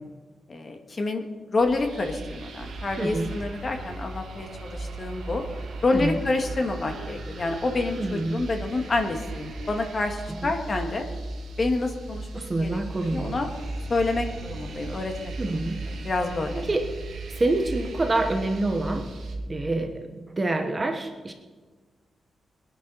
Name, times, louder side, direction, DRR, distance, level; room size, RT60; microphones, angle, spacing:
voice 1, 0.5-5.4 5.8-11.1 11.6-12.3 12.6-13.5 13.9-15.6 15.9-16.7, left 3 dB, 30° left, 4 dB, 1.8 m, -28 dB
sound 1, 1.6-19.4, right 2 dB, 75° right, 2.6 m, -37 dB
voice 2, 3.0-3.3 5.9-6.2 8.0-8.4 10.4-10.5 12.3-13.4 15.4-15.8 16.5-16.9 17.4-19.1 19.5-21.3, right 2 dB, 20° right, 5 dB, 1.1 m, -27 dB
22.0 x 10.5 x 5.6 m, 1.4 s
wide cardioid pair, 175°, 0 cm